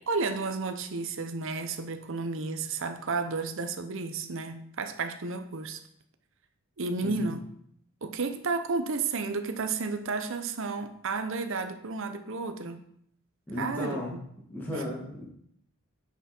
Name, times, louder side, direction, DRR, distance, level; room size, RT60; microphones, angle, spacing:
voice 1, 0.1-5.8 6.8-7.4 8.0-12.8 13.6-14.2 14.7-14.8, right 4 dB, 65° right, 8 dB, 0.8 m, -32 dB
voice 2, 7.0-7.3 13.5-14.1 14.5-15.2, left 1 dB, 10° left, -6 dB, 2.1 m, -35 dB
9.9 x 6.0 x 4.4 m, 0.69 s
head